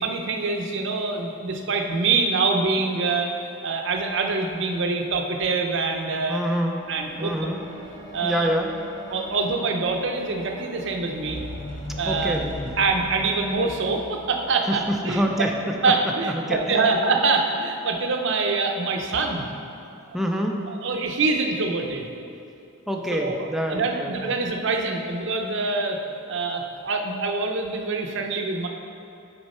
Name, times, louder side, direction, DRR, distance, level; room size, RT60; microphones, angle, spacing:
voice 1, 0.0-3.4 3.6-6.4 6.9-7.5 8.1-8.5 9.1-11.4 12.0-12.4 12.8-15.2 15.8-19.5 20.7-22.1 23.1-26.0 26.3-28.7, right 3 dB, 60° right, 3 dB, 0.6 m, -25 dB
voice 2, 6.3-6.8 7.2-7.6 8.2-8.7 12.1-12.7 14.7-15.5 16.3-16.9 20.1-20.6 22.9-24.3, equal, ahead, 1 dB, 0.3 m, -26 dB
sound 1, 6.6-16.1 16.9-17.0, left 1 dB, 40° left, 1.2 m, -39 dB
6.3 x 4.5 x 4.2 m, 2.6 s
head